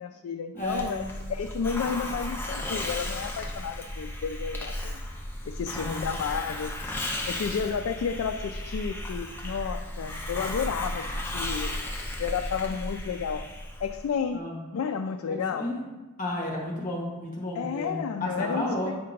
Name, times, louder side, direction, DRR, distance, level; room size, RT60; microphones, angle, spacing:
voice 1, 0.0-5.0 5.5-7.0 7.3-11.9 12.2-13.5 13.8-14.5 14.7-15.7 17.5-19.0, left 6 dB, 80° left, 5 dB, 0.3 m, -32 dB
voice 2, 0.5-1.0 5.7-6.0 14.3-14.6 15.3-15.8 16.2-18.9, left 1 dB, 40° left, -2 dB, 1.2 m, -32 dB
Hiss, 0.6-14.1, left 1 dB, 10° left, 0.5 m, -35 dB
8.5 x 2.9 x 5.1 m, 1.2 s
head